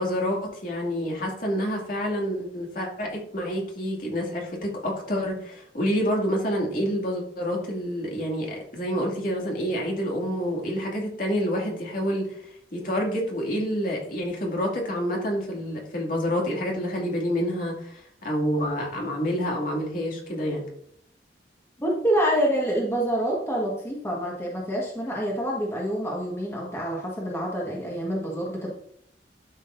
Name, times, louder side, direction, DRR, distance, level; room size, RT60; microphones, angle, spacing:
voice 1, 0.0-12.4 12.7-20.6, equal, 50° left, -1 dB, 2.4 m, -28 dB
voice 2, 21.8-28.7, right 1 dB, 15° left, -3 dB, 1.6 m, -27 dB
12.0 x 6.5 x 2.7 m, 0.65 s
head